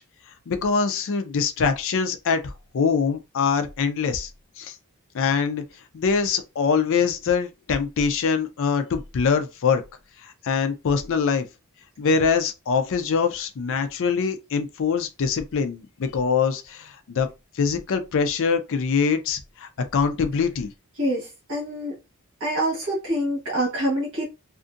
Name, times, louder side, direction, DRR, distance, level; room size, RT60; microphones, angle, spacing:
voice 1, 0.5-4.3 4.6-4.7 5.1-5.6 5.9-9.8 10.2-11.4 12.0-17.3 17.5-20.7, left 5 dB, 60° left, 0.4 m, -23 dB
voice 2, 21.0-21.9 22.4-24.2, right 1 dB, 65° right, 1.1 m, -26 dB
2.5 x 2.5 x 2.5 m
head